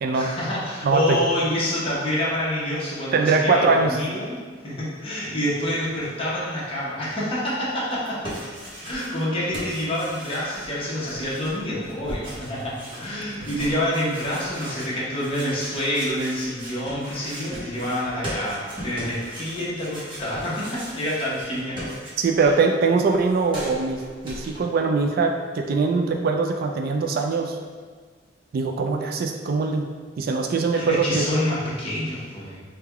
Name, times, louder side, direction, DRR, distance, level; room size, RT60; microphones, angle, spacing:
voice 1, 0.1-8.3 8.8-21.9 22.4-22.5 30.7-32.6, left 1 dB, 30° left, -8 dB, 0.9 m, -27 dB
voice 2, 0.8-1.2 3.1-4.0 22.2-27.6 28.5-29.9 30.2-31.2, right 4 dB, 50° right, 3 dB, 0.3 m, -22 dB
sound 1, 7.9-9.3 9.5-22.5 22.8-24.6, equal, 25° right, 0.9 m, -38 dB
3.4 x 2.2 x 3.4 m, 1.5 s
head